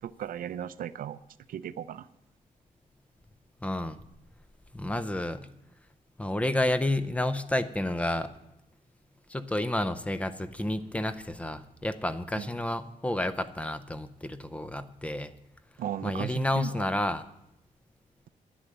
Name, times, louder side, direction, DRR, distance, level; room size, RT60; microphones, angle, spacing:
voice 1, 0.0-1.2 1.5-2.1 12.3-12.5 15.8-16.9, right 10 dB, 90° right, 14 dB, 0.6 m, -36 dB
voice 2, 3.6-4.0 4.7-5.4 6.2-8.3 9.3-15.3 16.0-17.3, left 1 dB, 10° left, 11 dB, 0.5 m, -30 dB
11.0 x 10.0 x 7.5 m, 0.84 s
wide cardioid pair, 175°, 14 cm